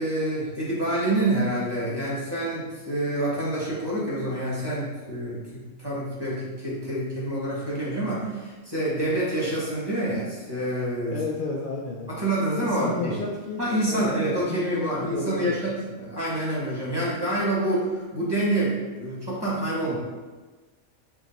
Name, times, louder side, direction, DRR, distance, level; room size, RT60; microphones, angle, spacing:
voice 1, 0.0-11.2 12.1-13.2 13.6-15.7 16.0-20.0, right 1 dB, 20° right, -7 dB, 1.2 m, -27 dB
voice 2, 11.1-12.1 12.6-15.7, left 4 dB, 75° left, -3 dB, 0.4 m, -33 dB
4.3 x 3.0 x 4.1 m, 1.3 s
omnidirectional pair, 1.5 m